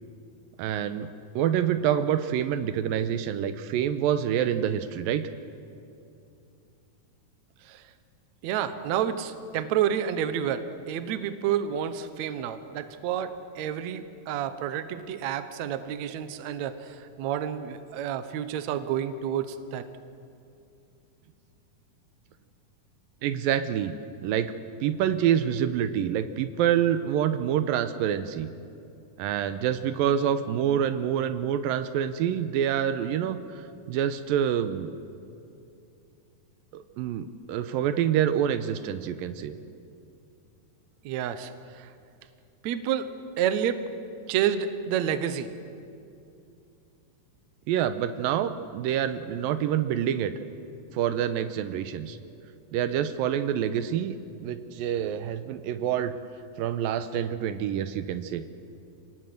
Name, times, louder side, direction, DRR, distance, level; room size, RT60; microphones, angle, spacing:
voice 1, 0.6-1.1 1.4-5.3 23.2-24.0 24.2-24.5 24.8-28.5 29.2-33.6 33.9-34.9 36.7-39.5 47.7-50.3 50.9-52.2 52.7-56.1 56.6-58.4, right 9 dB, 85° right, 11 dB, 2.5 m, -27 dB
voice 2, 8.4-19.9 41.0-41.9 42.6-43.1 43.4-43.9 44.3-45.5, right 9 dB, 65° right, 11 dB, 2.0 m, -29 dB
27.0 x 19.0 x 7.9 m, 2.6 s
omnidirectional pair, 4.1 m